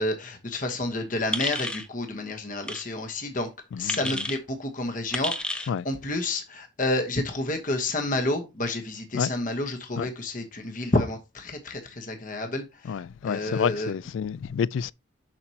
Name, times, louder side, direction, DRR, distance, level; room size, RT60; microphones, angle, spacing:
voice 1, 0.0-3.5 3.8-13.9, left 2 dB, 40° left, 1.1 m, -30 dB
sound 1, 1.3-1.9 2.6-2.8 3.9-4.4 5.1-5.7, left 1 dB, 5° left, 0.4 m, -30 dB
voice 2, 3.7-4.2 5.7-5.9 9.1-9.3 10.0-10.1 12.8-14.9, left 7 dB, 75° left, 0.3 m, -29 dB
7.4 x 6.0 x 2.9 m
head